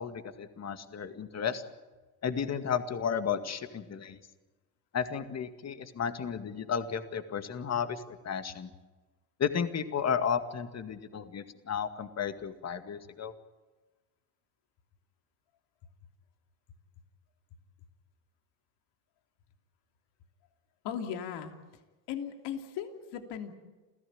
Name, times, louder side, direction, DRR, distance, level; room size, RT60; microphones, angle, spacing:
voice 1, 0.0-1.6 2.2-4.2 4.9-8.7 9.4-13.3, left 7 dB, 35° left, 10 dB, 2.1 m, -33 dB
voice 2, 20.8-21.5 22.1-23.5, left 8 dB, 60° left, 6 dB, 3.0 m, -37 dB
28.5 x 16.0 x 8.8 m, 1.2 s
hypercardioid pair, 80°, 46 cm